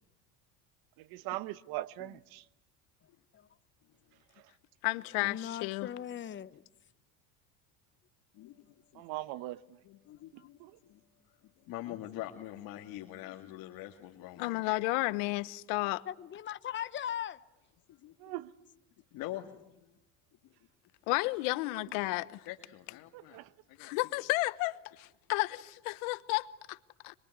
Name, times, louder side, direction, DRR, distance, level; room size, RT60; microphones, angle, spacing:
voice 1, 1.0-2.5 4.3-4.5 8.9-9.8 10.3-10.8 18.2-18.5 21.7-21.8 23.1-23.5, right 16 dB, 65° right, 1.2 m, -41 dB
voice 2, 3.0-3.5 5.2-6.6 10.4-10.5 16.1-17.4, left 10 dB, 30° left, 0.9 m, -40 dB
voice 3, 4.8-5.9 14.4-16.0 21.1-22.5 23.8-26.8 27.0-27.1, left 22 dB, 80° left, 1.1 m, -32 dB
voice 4, 8.3-9.0 9.8-11.0 11.4-14.6 17.9-18.3 19.1-20.0 20.4-20.5 22.4-23.4 23.7-24.0, left 14 dB, 60° left, 2.2 m, -45 dB
25.5 x 23.0 x 9.6 m
supercardioid pair, 120°, 39 cm